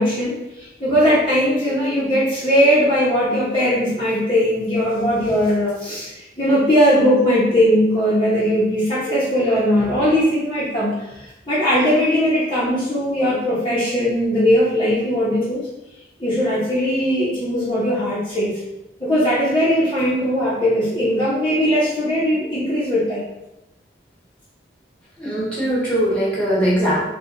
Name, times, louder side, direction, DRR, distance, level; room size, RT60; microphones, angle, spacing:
voice 1, 0.0-15.6 16.2-18.6 19.0-23.2, equal, 30° left, -10 dB, 1.0 m, -19 dB
voice 2, 25.2-27.0, equal, 5° left, -8 dB, 1.4 m, -20 dB
4.0 x 2.4 x 3.8 m, 0.93 s
head